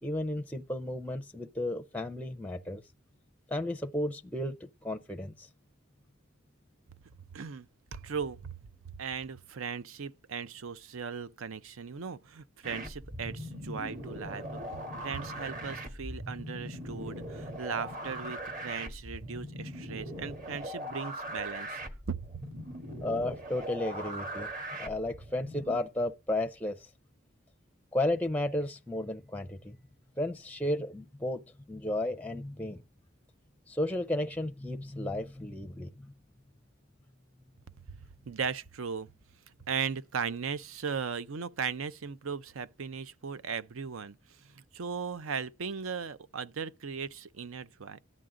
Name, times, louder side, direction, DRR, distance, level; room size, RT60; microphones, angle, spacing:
voice 1, 0.0-2.8 3.5-4.6 4.8-5.5 23.0-24.5 24.8-26.9 27.9-29.8 30.2-31.4 31.7-32.8 33.7-36.1, left 1 dB, 5° left, 0.5 m, -33 dB
voice 2, 7.3-8.6 9.0-14.6 15.0-21.8 22.1-22.4 37.9-38.0 38.3-39.1 39.7-44.2 44.4-48.0, right 6 dB, 80° right, 0.6 m, -37 dB
sound 1, 12.6-25.8, right 1 dB, 40° right, 1.4 m, -40 dB
14.0 x 9.2 x 3.7 m
head